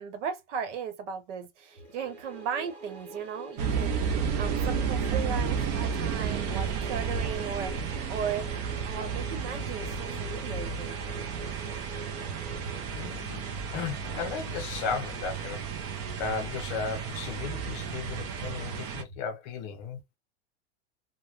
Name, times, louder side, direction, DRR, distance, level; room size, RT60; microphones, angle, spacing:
voice 1, 0.0-8.5 8.9-11.0, right 7 dB, 85° right, 1.0 m, -36 dB
sound 1, 1.7-13.5, right 1 dB, 15° right, 1.6 m, -45 dB
sound 2, 3.6-19.0, right 6 dB, 40° right, 0.5 m, -32 dB
voice 2, 12.9-20.0, left 5 dB, 40° left, 0.6 m, -35 dB
3.1 x 2.2 x 2.3 m
supercardioid pair, 170°, 35 cm